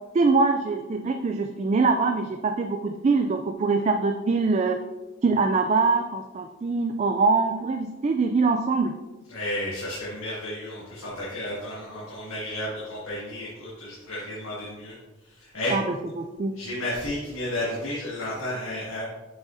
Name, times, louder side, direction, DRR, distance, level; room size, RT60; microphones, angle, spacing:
voice 1, 0.1-4.8 5.2-9.0 15.7-15.8 16.2-16.5, right 4 dB, 35° right, 6 dB, 0.3 m, -23 dB
voice 2, 9.3-15.0 15.4-15.8 16.6-19.0, left 1 dB, 80° left, -8 dB, 1.9 m, -32 dB
7.3 x 6.2 x 2.6 m, 1.1 s
head